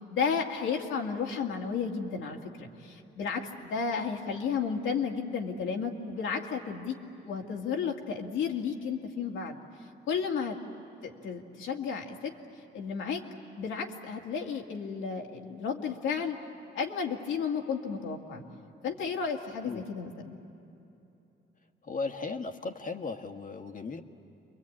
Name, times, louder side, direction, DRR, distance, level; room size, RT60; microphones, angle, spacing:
voice 1, 0.1-7.0 7.2-9.6 10.1-10.6 11.0-12.3 12.7-13.2 13.6-16.4 16.7-18.4 18.8-20.4, left 6 dB, 80° left, 1 dB, 2.2 m, -33 dB
voice 2, 21.8-24.0, left 4 dB, 40° left, 5 dB, 1.6 m, -36 dB
28.5 x 23.0 x 8.7 m, 2.9 s
cardioid pair, 90°, 20 cm